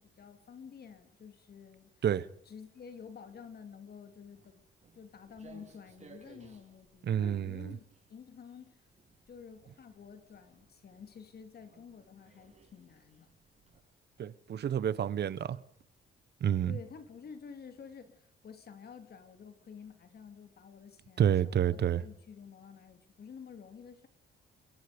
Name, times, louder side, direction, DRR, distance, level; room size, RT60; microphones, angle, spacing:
voice 1, 0.0-2.0 2.5-4.6 4.9-7.8 8.1-8.9 9.3-13.3 16.7-24.1, left 6 dB, 50° left, 3.0 m, -50 dB
Walk footsteps, 4.3-13.8, right 4 dB, 35° right, 6.9 m, -61 dB
voice 2, 7.0-7.7 14.2-15.6 16.4-16.8 21.2-22.0, right 9 dB, 55° right, 1.1 m, -29 dB
25.0 x 22.0 x 5.2 m
cardioid pair, 90°, 20 cm